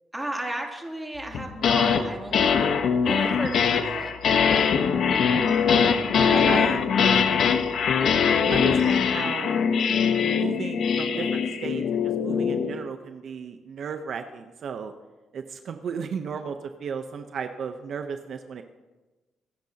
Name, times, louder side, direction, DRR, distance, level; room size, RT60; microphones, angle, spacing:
voice 1, 0.1-4.2, right 1 dB, 10° right, 0 dB, 2.8 m, -34 dB
sound 1, 1.3-2.0 2.3-12.7, left 6 dB, 65° left, 1.1 m, -22 dB
voice 2, 5.2-7.5 8.5-9.6 10.3-14.9 15.3-18.6, right 6 dB, 60° right, 7 dB, 0.8 m, -35 dB
26.0 x 10.5 x 2.9 m, 1.2 s
cardioid pair, 90°, 0 cm